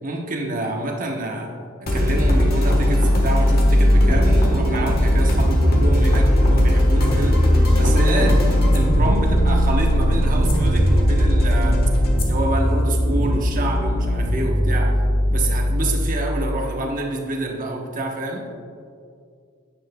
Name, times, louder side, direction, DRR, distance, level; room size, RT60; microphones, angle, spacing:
voice 1, 0.0-1.5 1.8-7.5 7.7-11.8 12.2-15.0 15.3-18.5, right 2 dB, 40° right, 1 dB, 1.0 m, -27 dB
sound 1, 1.9-15.2, equal, 45° left, 1.3 m, -19 dB
sound 2, 4.1-16.1, equal, 15° left, 1.3 m, -23 dB
10.0 x 8.8 x 2.2 m, 2.3 s
head